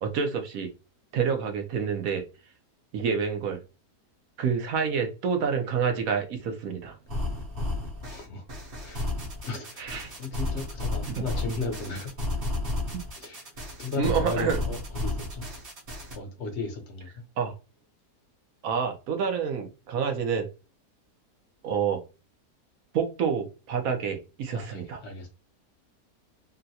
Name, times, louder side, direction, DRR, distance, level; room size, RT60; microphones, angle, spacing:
voice 1, 0.0-0.7 1.1-2.2 2.9-3.6 4.4-7.0 9.8-10.1 12.9-13.0 14.0-14.6 17.4-17.5 18.6-20.5 21.6-22.0 22.9-25.0, right 6 dB, 65° right, 1.0 m, -28 dB
sound 1, 7.1-16.2, left 2 dB, 40° right, 0.9 m, -32 dB
voice 2, 8.0-8.4 8.8-9.1 9.4-12.2 13.2-15.4 16.1-17.2 24.5-25.3, left 3 dB, 50° left, 1.0 m, -36 dB
3.7 x 2.1 x 2.7 m
omnidirectional pair, 1.8 m